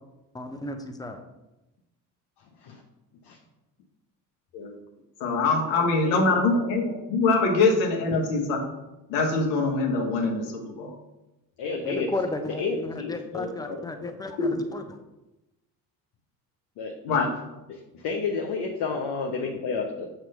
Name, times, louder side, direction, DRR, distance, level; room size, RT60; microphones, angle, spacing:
voice 1, 0.3-1.2 11.8-15.0, left 2 dB, 10° left, 6 dB, 0.7 m, -34 dB
voice 2, 2.4-2.8 3.2-3.4 5.7-6.8 8.1-8.2 11.6-12.1 12.6-14.1 16.8-17.3 17.7-20.1, left 4 dB, 50° left, 1 dB, 1.0 m, -32 dB
voice 3, 5.2-8.6 9.1-10.9 14.4-14.6 17.0-17.2, left 3 dB, 65° left, 1 dB, 1.5 m, -23 dB
6.8 x 3.0 x 5.5 m, 0.98 s
figure-of-eight pair, 55°, 49 cm